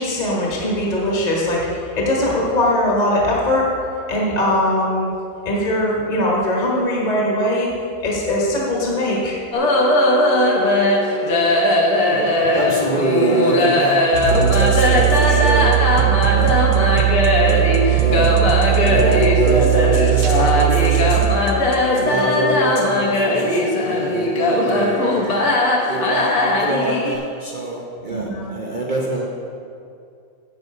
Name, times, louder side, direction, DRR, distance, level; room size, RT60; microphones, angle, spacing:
voice 1, 0.0-1.7 1.9-3.7 4.1-5.1 5.4-7.7 8.0-9.4 22.1-22.4 28.1-28.5, left 1 dB, 25° left, -3 dB, 1.4 m, -20 dB
sound 1, 9.5-27.2, left 1 dB, 55° left, 1.5 m, -18 dB
voice 2, 12.1-21.4 21.9-25.4 25.9-29.3, right 2 dB, 70° right, -2 dB, 0.4 m, -25 dB
sound 2, 14.1-22.0, right 18 dB, 90° right, 1.5 m, -18 dB
7.9 x 7.7 x 5.4 m, 2.5 s
omnidirectional pair, 2.1 m